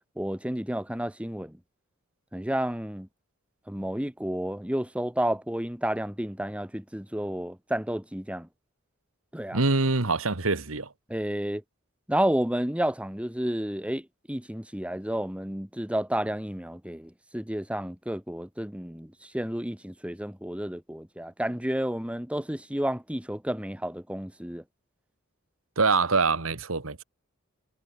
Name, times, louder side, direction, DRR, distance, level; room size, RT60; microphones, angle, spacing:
voice 1, 0.2-1.6 2.3-3.1 3.7-8.5 9.3-9.6 11.1-11.6 12.1-24.6, right 1 dB, 5° right, 1.6 m, -31 dB
voice 2, 9.5-10.9 25.8-27.0, right 3 dB, 85° right, 1.8 m, -24 dB
head